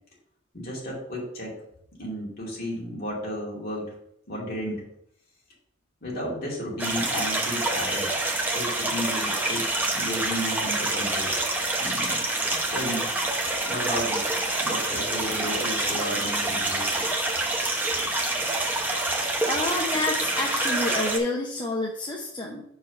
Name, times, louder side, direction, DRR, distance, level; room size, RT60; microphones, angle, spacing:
voice 1, 0.5-1.6 2.0-3.9 4.3-4.8 6.0-8.1 8.5-11.3 11.8-12.2 12.5-13.1 13.7-14.3 14.6-17.0, equal, 45° left, -4 dB, 2.6 m, -33 dB
sound 1, 6.8-21.2, right 2 dB, 10° right, 0.8 m, -27 dB
voice 2, 19.5-22.6, left 2 dB, 25° left, -1 dB, 0.7 m, -28 dB
5.7 x 4.8 x 5.3 m, 0.74 s
head